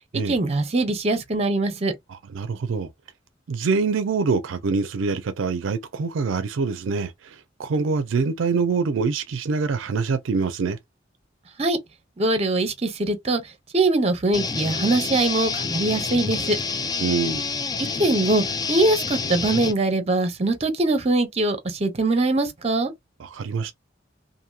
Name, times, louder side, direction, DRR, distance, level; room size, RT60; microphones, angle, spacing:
voice 1, 0.3-1.9 11.6-11.8 12.2-13.4 13.7-16.6 18.0-22.9, right 2 dB, 35° right, 0.8 m, -22 dB
voice 2, 2.1-2.9 3.5-10.8 17.0-17.5 23.2-23.7, right 4 dB, 80° right, 0.4 m, -25 dB
sound 1, 14.3-19.7, left 4 dB, 20° left, 0.4 m, -28 dB
2.8 x 2.6 x 2.3 m
head